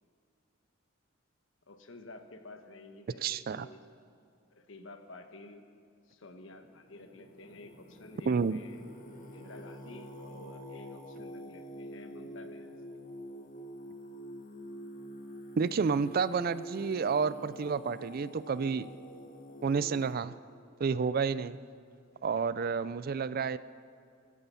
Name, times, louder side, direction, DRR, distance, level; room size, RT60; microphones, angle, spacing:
voice 1, 1.7-3.9 4.5-5.7 6.1-8.8 9.3-12.8, left 2 dB, 70° left, 7 dB, 1.2 m, -51 dB
voice 2, 3.2-3.7 8.3-8.6 15.6-18.9 19.6-20.4 20.8-21.6 22.2-23.6, right 5 dB, 45° right, 16 dB, 0.4 m, -30 dB
Singing, 6.3-20.1, equal, 45° left, 1.7 m, -46 dB
17.0 x 13.5 x 5.6 m, 2.3 s
head